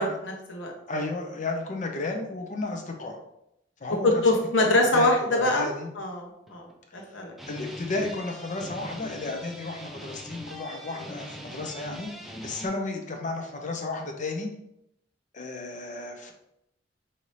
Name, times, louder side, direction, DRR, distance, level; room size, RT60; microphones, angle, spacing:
voice 1, 0.0-0.7 4.0-5.7 6.0-7.3, left 2 dB, 85° left, 1 dB, 1.0 m, -24 dB
voice 2, 0.9-3.2 3.8-4.2 4.9-5.9 6.9-7.1 7.5-12.1 12.4-14.5 15.3-16.3, left 2 dB, 40° left, 3 dB, 0.7 m, -33 dB
sound 1, 6.3-7.0 7.3-12.7, equal, ahead, 0.7 m, -42 dB
5.2 x 2.8 x 3.2 m, 0.79 s
head